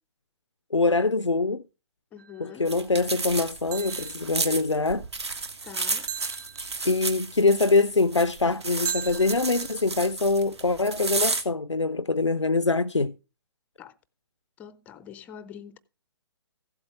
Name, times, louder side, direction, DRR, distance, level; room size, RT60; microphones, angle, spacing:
voice 1, 0.7-1.6 2.4-5.0 6.8-13.1, left 3 dB, 90° left, 0.4 m, -24 dB
voice 2, 2.1-2.7 5.6-6.1 13.8-14.0 14.6-15.8, left 8 dB, 10° left, 0.4 m, -44 dB
sound 1, 2.2-2.5 3.7-4.4 6.1-7.2 8.8-9.8, right 8 dB, 40° right, 0.6 m, -37 dB
sound 2, 2.7-11.4, right 3 dB, 65° right, 1.4 m, -32 dB
15.5 x 8.0 x 3.2 m
figure-of-eight pair, 125°, 15 cm